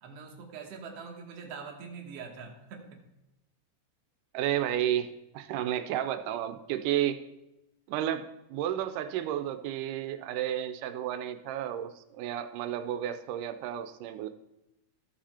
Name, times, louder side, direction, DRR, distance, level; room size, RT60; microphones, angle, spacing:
voice 1, 0.0-3.0, right 5 dB, 60° right, 1 dB, 2.0 m, -44 dB
voice 2, 4.3-7.2 7.9-14.3, right 11 dB, 90° right, 9 dB, 2.1 m, -32 dB
14.0 x 5.0 x 4.2 m, 0.92 s
omnidirectional pair, 3.6 m